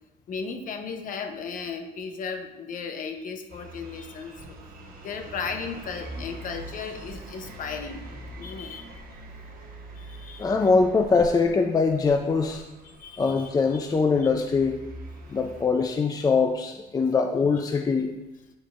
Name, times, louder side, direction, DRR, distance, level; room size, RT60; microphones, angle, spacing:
voice 1, 0.3-8.0 8.3-9.2 10.0-10.5 12.8-13.8 14.2-14.3, left 5 dB, 55° left, 5 dB, 0.9 m, -36 dB
sound 1, 3.5-15.7, right 1 dB, 55° right, 1.2 m, -43 dB
voice 2, 10.4-12.6 13.2-14.8 15.3-18.1, left 4 dB, 20° left, 4 dB, 0.5 m, -22 dB
8.4 x 5.2 x 2.6 m, 1.0 s
cardioid pair, 110°, 17 cm